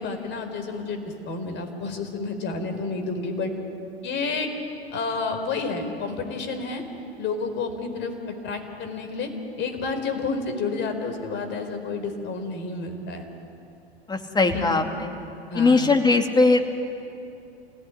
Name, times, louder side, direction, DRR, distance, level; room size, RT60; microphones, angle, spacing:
voice 1, 0.0-3.5 4.0-4.5 4.9-6.8 7.2-8.1 8.4-9.3 9.6-13.2 14.5-14.8 15.5-15.9, left 4 dB, 35° left, 7 dB, 4.7 m, -30 dB
voice 2, 14.1-14.8 15.5-16.7, left 3 dB, 15° left, 5 dB, 2.6 m, -19 dB
28.5 x 18.0 x 10.0 m, 2.7 s
figure-of-eight pair, 95°, 31 cm